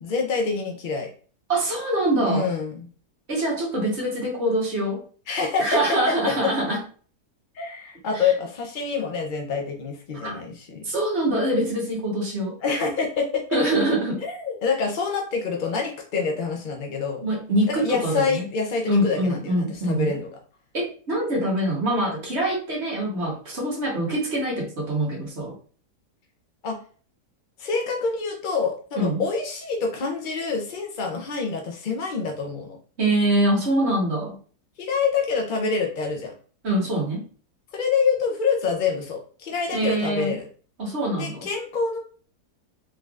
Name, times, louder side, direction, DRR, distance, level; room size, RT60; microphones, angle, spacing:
voice 1, 0.0-1.1 2.2-2.9 5.3-5.8 7.5-10.9 12.6-13.4 14.2-17.2 17.7-20.3 26.6-26.8 27.6-32.8 34.8-36.3 37.7-40.5 41.2-42.0, left 5 dB, 75° left, 2 dB, 0.4 m, -26 dB
voice 2, 1.5-2.5 3.3-5.0 5.6-6.8 8.1-8.3 10.2-10.3 10.8-12.5 13.5-14.2 17.2-18.4 18.9-20.1 20.7-25.5 29.0-29.2 33.0-34.4 36.6-37.3 39.7-40.4 40.8-41.5, right 1 dB, 45° right, -2 dB, 1.4 m, -24 dB
3.8 x 3.1 x 2.4 m, 0.41 s
omnidirectional pair, 1.7 m